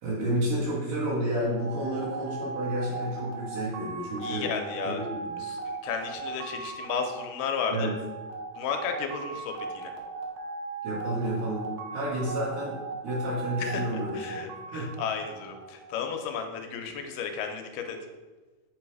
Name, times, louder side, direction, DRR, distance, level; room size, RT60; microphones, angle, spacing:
voice 1, 0.0-4.5 4.8-5.4 7.7-7.9 10.8-11.6 11.9-12.8 13.0-14.4 14.7-14.9, right 1 dB, 90° right, -8 dB, 3.9 m, -30 dB
sound 1, 1.5-16.0, right 4 dB, 75° right, 1.7 m, -38 dB
voice 2, 4.2-5.0 5.4-7.9 8.5-9.9 13.6-13.8 14.1-18.0, left 6 dB, 85° left, 5 dB, 2.3 m, -33 dB
7.1 x 3.1 x 4.7 m, 1.2 s
omnidirectional pair, 3.8 m